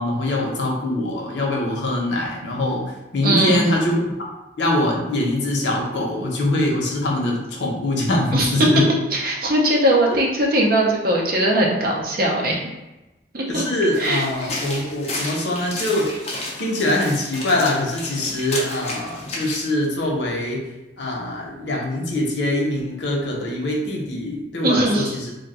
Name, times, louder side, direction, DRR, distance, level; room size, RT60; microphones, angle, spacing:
voice 1, 0.0-2.8 3.1-4.0 4.6-8.8 10.1-10.2 13.5-16.1 16.6-20.7 21.0-25.3, left 1 dB, 90° left, -1 dB, 0.7 m, -23 dB
voice 2, 3.2-3.7 8.3-8.5 9.1-12.6 13.3-13.6 14.0-14.5 24.6-25.2, right 1 dB, 55° right, -2 dB, 0.7 m, -20 dB
sound 1, 13.9-19.6, left 2 dB, 40° left, 0.6 m, -32 dB
2.6 x 2.2 x 3.9 m, 1.0 s
head